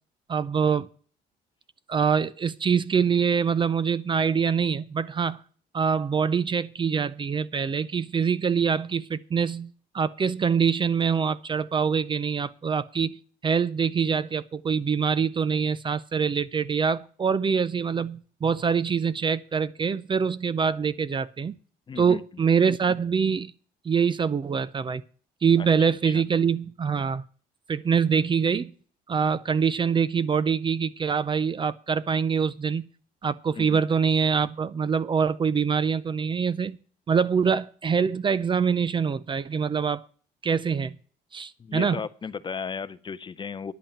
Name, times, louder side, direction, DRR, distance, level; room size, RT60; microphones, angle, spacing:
voice 1, 0.3-0.9 1.9-5.4 5.7-21.6 22.0-23.5 23.8-25.0 25.4-27.2 27.7-28.7 29.1-32.9 33.2-36.8 37.1-40.0 40.4-41.0 41.3-42.0, right 6 dB, 30° right, 0.5 m, -24 dB
voice 2, 21.9-22.2 25.6-25.7 26.0-26.2 33.6-33.8 41.6-43.7, left 6 dB, 30° left, 0.7 m, -35 dB
10.5 x 5.5 x 8.6 m
cardioid pair, 110°, 17 cm